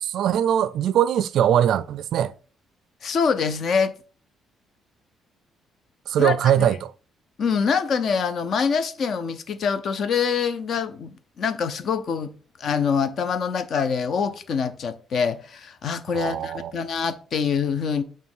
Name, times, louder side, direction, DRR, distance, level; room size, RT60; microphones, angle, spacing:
voice 1, 0.0-2.3 6.1-6.9 16.1-16.7, right 10 dB, 60° right, 0.4 m, -21 dB
voice 2, 3.0-3.9 6.2-6.7 7.4-12.3 12.6-18.0, left 6 dB, 45° left, 0.7 m, -25 dB
8.5 x 3.8 x 3.7 m
cardioid pair, 165°, 0 cm